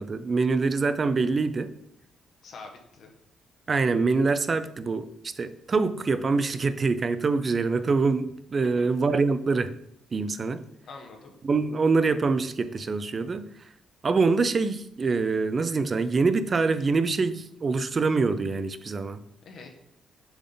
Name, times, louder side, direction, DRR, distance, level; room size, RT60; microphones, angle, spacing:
voice 1, 0.0-1.7 3.7-9.7 10.1-10.6 11.4-13.5 14.0-19.2, right 4 dB, 35° right, 0.4 m, -25 dB
voice 2, 2.4-3.1 8.6-8.9 10.9-11.3 19.4-19.7, left 3 dB, 60° left, 1.2 m, -44 dB
6.9 x 3.8 x 3.9 m
cardioid pair, 90°, 0 cm